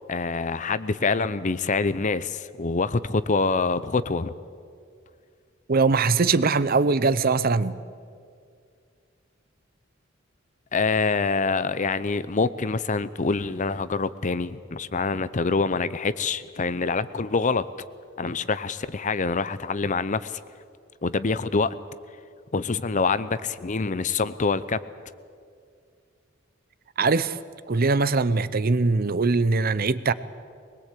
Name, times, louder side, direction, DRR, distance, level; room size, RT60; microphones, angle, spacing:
voice 1, 0.1-4.3 10.7-17.6 18.2-20.4 21.0-21.8 22.5-24.8, left 4 dB, 40° left, 15 dB, 0.7 m, -25 dB
voice 2, 5.7-7.8 27.0-27.4 27.7-30.1, right 4 dB, 45° right, 16 dB, 0.7 m, -21 dB
22.5 x 20.5 x 8.4 m, 2.2 s
head